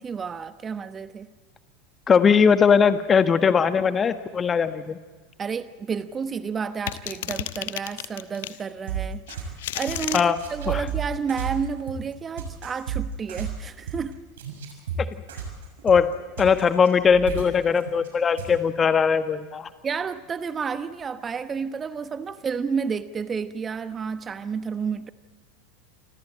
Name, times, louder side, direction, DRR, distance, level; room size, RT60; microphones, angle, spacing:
voice 1, 0.0-1.3 5.4-14.2 19.8-25.1, right 6 dB, 25° right, 12 dB, 1.0 m, -31 dB
voice 2, 2.1-5.0 10.1-10.4 10.7-10.8 15.0-15.1 15.8-16.1 16.4-19.7, left 6 dB, 25° left, 10 dB, 1.6 m, -20 dB
sound 1, 6.9-8.6 9.3-10.3, left 14 dB, 65° left, 1.1 m, -32 dB
sound 2, 8.9-10.0 10.4-18.1 18.4-18.5, right 7 dB, 65° right, 6.5 m, -32 dB
28.5 x 26.0 x 4.3 m, 1.4 s
figure-of-eight pair, 80°, 0 cm